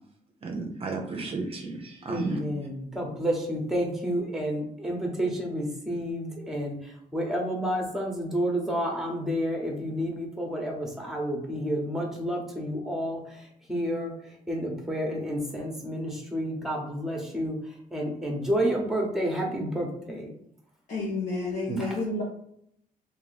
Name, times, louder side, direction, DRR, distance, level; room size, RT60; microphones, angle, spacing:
voice 1, 0.4-2.4 21.7-21.8, right 3 dB, 40° right, 1 dB, 0.6 m, -33 dB
voice 2, 2.1-6.8 7.1-13.2 13.7-14.1 14.5-17.6 17.9-20.3, equal, 5° right, 0 dB, 1.0 m, -30 dB
voice 3, 20.9-22.2, left 3 dB, 55° left, -5 dB, 0.9 m, -30 dB
2.9 x 2.7 x 3.9 m, 0.70 s
cardioid pair, 110°, 15 cm